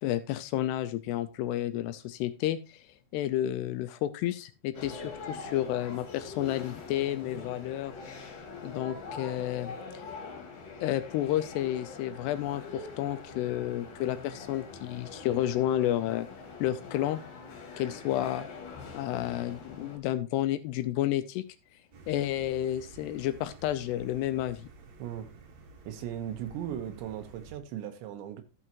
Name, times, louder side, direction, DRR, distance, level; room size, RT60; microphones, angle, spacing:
voice 1, 0.0-2.9 3.1-7.9 8.6-10.1 10.8-16.3 16.6-17.2 17.8-18.5 18.9-21.4 22.1-24.7, left 13 dB, 80° left, 2.5 m, -31 dB
sound 1, 4.7-20.0, left 4 dB, 55° left, 2.9 m, -44 dB
sound 2, 21.9-27.6, right 4 dB, 55° right, 2.1 m, -51 dB
voice 2, 25.8-28.4, right 10 dB, 90° right, 3.4 m, -37 dB
14.0 x 6.3 x 3.0 m
omnidirectional pair, 5.1 m